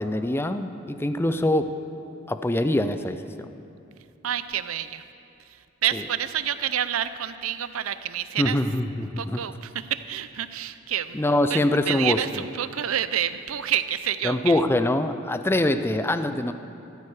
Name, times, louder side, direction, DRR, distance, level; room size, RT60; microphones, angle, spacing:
voice 1, 0.0-1.8 2.3-3.5 5.9-6.0 8.4-9.4 11.1-12.4 14.2-16.5, left 1 dB, 10° left, 10 dB, 0.5 m, -24 dB
voice 2, 4.2-5.0 5.5-8.6 9.2-11.2 11.5-11.6 11.9-14.6, right 10 dB, 85° right, 13 dB, 0.6 m, -28 dB
14.0 x 13.5 x 4.9 m, 2.7 s
head